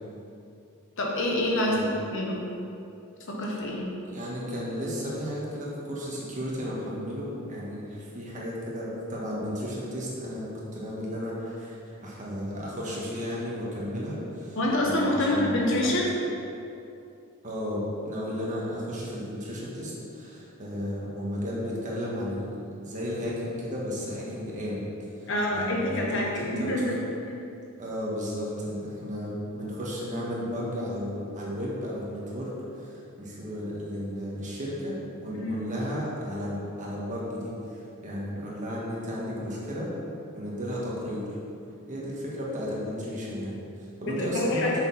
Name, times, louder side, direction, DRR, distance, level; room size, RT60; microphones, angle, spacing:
voice 1, 1.0-1.8 2.1-2.4 3.3-3.9 14.6-16.1 25.3-27.0 27.3-27.4 35.3-35.6 44.0-44.8, left 1 dB, 60° left, -2 dB, 1.2 m, -27 dB
voice 2, 4.0-14.6 14.8-16.0 17.4-24.9 25.2-26.9 27.8-39.9 40.3-41.3 41.9-44.7, equal, 35° right, -5 dB, 1.7 m, -34 dB
6.7 x 6.4 x 4.2 m, 2.7 s
head